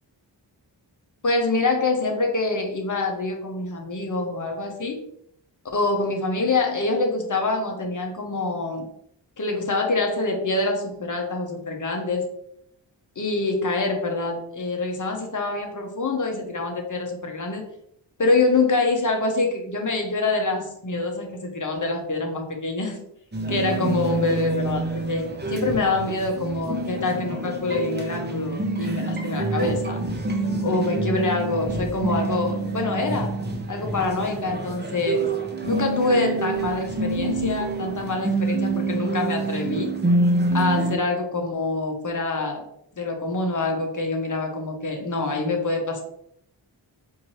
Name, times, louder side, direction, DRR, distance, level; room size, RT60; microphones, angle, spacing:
voice 1, 1.2-5.0 5.7-8.9 9.4-12.3 13.2-17.7 18.2-23.0 23.5-30.0 30.6-33.3 33.7-35.3 35.6-40.0 40.5-42.7 43.0-46.0, left 3 dB, 45° left, 3 dB, 1.0 m, -25 dB
sound 1, 23.3-41.0, right 2 dB, 25° right, 0.8 m, -27 dB
4.4 x 2.7 x 3.1 m, 0.72 s
cardioid pair, 50°, 44 cm